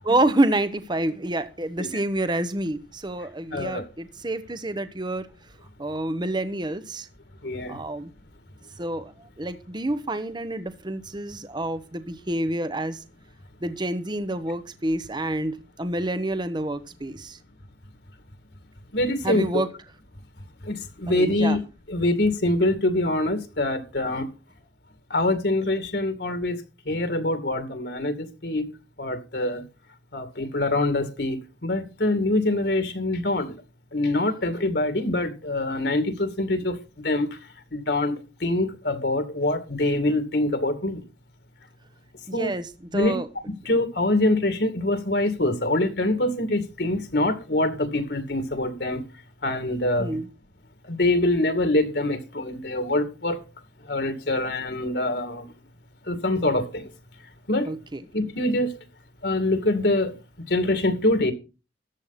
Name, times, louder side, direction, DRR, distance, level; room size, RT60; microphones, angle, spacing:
voice 1, 0.0-5.3 5.8-7.1 7.7-8.1 8.8-13.0 13.6-17.4 19.2-19.7 21.1-21.6 42.3-43.3 50.0-50.3 57.7-58.0, right 1 dB, 25° right, 1.0 m, -28 dB
voice 2, 3.5-3.8 7.4-7.8 18.9-19.6 20.6-21.6 21.9-24.3 25.1-26.6 26.9-28.7 29.0-29.6 30.1-31.4 31.6-33.6 33.9-36.8 37.0-37.4 37.7-41.0 42.3-42.5 42.9-43.2 43.7-49.0 49.4-50.2 50.9-53.4 53.9-55.4 56.1-56.9 57.5-57.7 58.1-58.7 59.2-60.1 60.5-61.3, left 2 dB, 65° left, 2.4 m, -24 dB
14.0 x 10.5 x 4.2 m
head